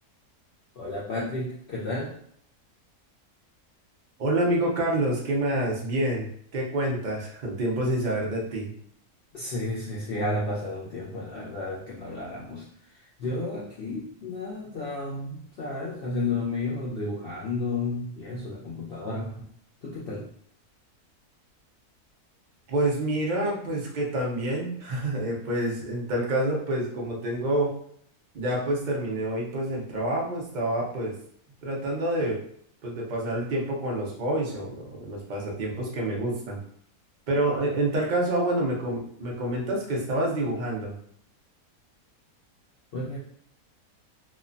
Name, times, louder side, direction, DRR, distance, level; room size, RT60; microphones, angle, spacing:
voice 1, 0.7-2.2 9.3-19.5 19.8-20.3 42.9-43.2, left 2 dB, 80° left, -5 dB, 0.5 m, -32 dB
voice 2, 4.2-8.7 22.7-27.7 28.3-31.2 31.6-32.4 32.8-36.6 37.3-40.9, right 1 dB, 60° right, -2 dB, 0.4 m, -27 dB
3.1 x 2.1 x 2.5 m, 0.65 s
omnidirectional pair, 1.6 m